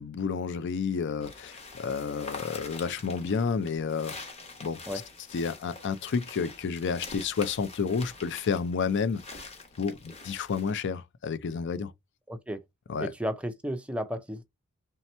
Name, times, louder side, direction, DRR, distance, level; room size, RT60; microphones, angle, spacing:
voice 1, 0.0-4.2 4.6-4.8 5.3-9.4 9.8-11.9 12.9-13.1, left 5 dB, 55° left, 0.4 m, -30 dB
sound 1, 1.2-10.7, left 3 dB, 25° left, 1.0 m, -45 dB
voice 2, 12.3-12.6 13.0-14.4, equal, 5° right, 0.4 m, -33 dB
3.3 x 2.8 x 4.2 m
head